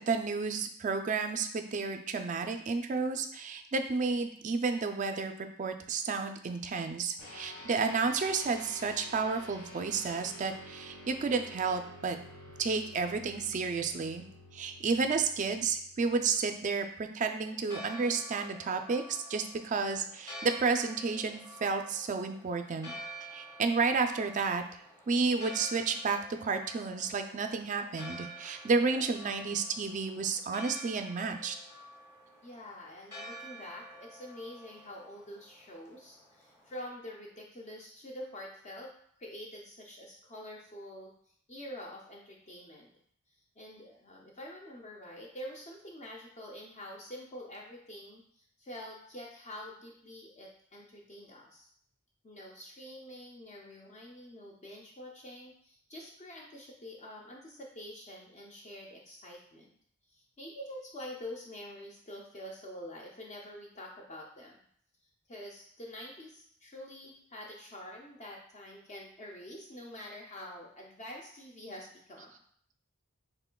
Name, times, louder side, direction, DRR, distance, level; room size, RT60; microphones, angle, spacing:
voice 1, 0.0-5.3 5.6-12.2 12.6-14.3 14.5-22.9 23.3-24.6 25.1-31.5, right 4 dB, 35° right, 6 dB, 0.3 m, -31 dB
sound 1, 7.2-16.9, left 1 dB, 85° left, 1.4 m, -50 dB
Church bell, 17.3-36.8, right 1 dB, 15° left, 1.1 m, -49 dB
voice 2, 32.4-38.9 39.2-41.1 41.5-42.9 43.6-51.7 52.2-59.7 60.1-64.6 65.3-72.3, left 1 dB, 30° left, -1 dB, 0.5 m, -46 dB
5.7 x 3.7 x 2.2 m, 0.63 s
head